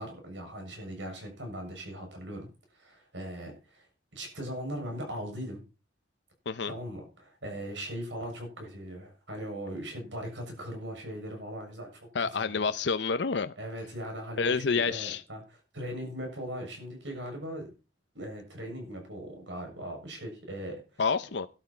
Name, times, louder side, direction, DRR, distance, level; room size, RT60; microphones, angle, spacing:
voice 1, 0.0-2.5 2.7-3.9 4.1-5.6 6.7-12.6 13.6-17.7 18.1-21.0, equal, 85° right, 7.1 m, -39 dB
voice 2, 12.1-13.5 14.4-15.2 21.0-21.5, left 5 dB, 70° left, 0.7 m, -28 dB
12.5 x 12.0 x 4.4 m
head